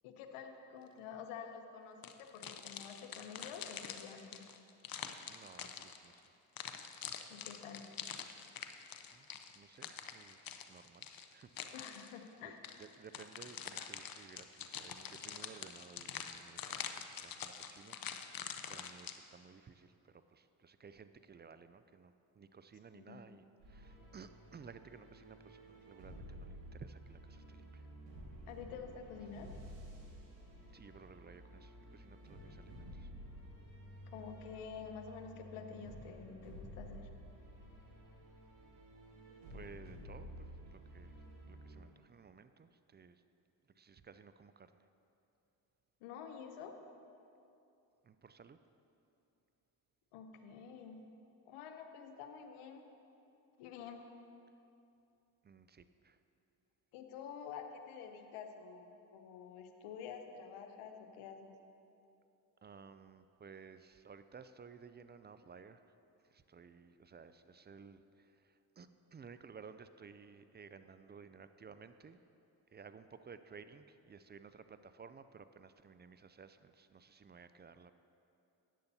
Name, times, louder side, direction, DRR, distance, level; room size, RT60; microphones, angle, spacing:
voice 1, 0.0-4.5 7.3-7.9 11.7-12.7 22.9-23.2 28.5-29.5 34.1-37.1 46.0-46.8 50.1-51.0 51.5-52.8 53.6-54.0 56.9-61.6, left 6 dB, 80° left, 6 dB, 0.9 m, -49 dB
sound 1, 2.0-6.2 6.6-12.2 12.6-19.2, left 8 dB, 45° left, 0.7 m, -46 dB
voice 2, 5.3-6.2 9.1-9.3 9.5-10.4 10.7-11.6 12.4-12.5 12.8-18.0 18.7-27.9 30.7-33.1 39.5-41.2 41.5-43.2 43.8-44.9 48.0-48.6 55.4-56.2 62.6-65.9 66.2-72.2 72.7-77.9, right 5 dB, 25° right, 11 dB, 0.4 m, -56 dB
sound 2, 23.6-41.8, equal, 80° right, 2.0 m, -52 dB
13.0 x 9.4 x 2.8 m, 2.8 s
hypercardioid pair, 45°, 49 cm